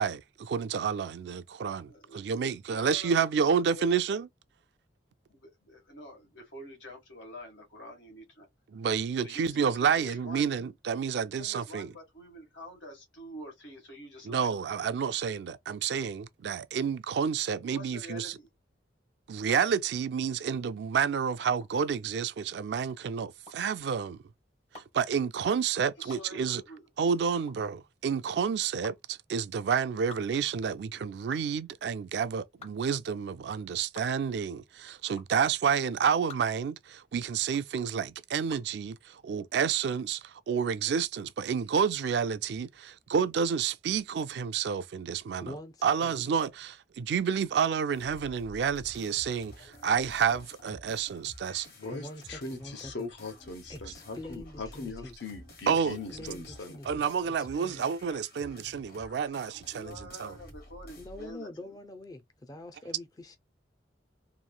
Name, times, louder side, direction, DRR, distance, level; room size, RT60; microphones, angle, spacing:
voice 1, 0.0-4.3 8.7-11.9 14.2-18.4 19.3-24.2 24.9-26.6 27.0-45.5 45.8-51.7 55.7-56.3 56.8-60.3, right 6 dB, 65° right, 0.3 m, -29 dB
voice 2, 1.9-2.3 2.7-3.9 5.3-8.5 9.2-10.5 11.3-14.5 14.8-14.9 17.6-18.5 26.0-26.9 54.3-54.4 59.5-61.8, equal, 90° left, 1.5 m, -47 dB
sound 1, 21.5-38.8, left 4 dB, 35° left, 0.8 m, -53 dB
voice 3, 45.4-46.1 51.9-53.1 53.7-55.1 55.7-57.9 61.0-63.4, left 1 dB, 20° left, 0.4 m, -45 dB
sound 2, 47.9-61.4, left 1 dB, 55° left, 1.2 m, -51 dB
voice 4, 51.8-56.8, left 3 dB, 75° left, 0.8 m, -40 dB
3.0 x 2.5 x 2.2 m
head